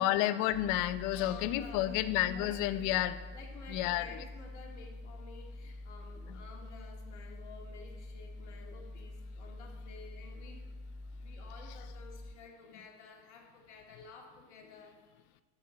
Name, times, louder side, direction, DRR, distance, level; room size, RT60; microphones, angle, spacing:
voice 1, 0.0-3.2 3.7-4.1 6.3-6.4, left 13 dB, 60° left, 14 dB, 0.7 m, -30 dB
sound 1, 0.5-12.3, left 2 dB, 20° left, 0.7 m, -46 dB
voice 2, 1.1-2.0 2.3-2.5 3.3-10.6 11.1-15.1, left 4 dB, 90° left, 1 dB, 2.0 m, -52 dB
11.5 x 4.6 x 7.6 m, 1.3 s
supercardioid pair, 100°, 34 cm